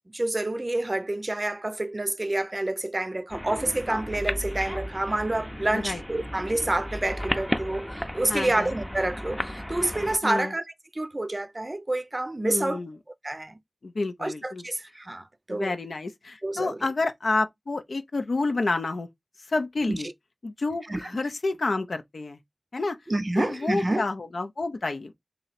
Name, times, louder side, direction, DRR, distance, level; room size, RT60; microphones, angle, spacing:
voice 1, 0.1-10.6 10.9-12.8 13.2-13.6 14.2-15.8 16.4-16.8 19.9-20.0 20.9-21.0 23.1-24.0, right 1 dB, 35° right, 0.5 m, -28 dB
sound 1, 3.3-10.2, equal, 10° left, 0.6 m, -34 dB
voice 2, 8.3-8.7 10.2-10.5 12.4-13.0 13.8-14.7 15.5-19.1 19.5-20.1 20.4-22.4 22.7-23.0 23.4-25.1, left 3 dB, 80° left, 0.5 m, -29 dB
3.0 x 2.7 x 4.1 m
wide cardioid pair, 45°, 0 cm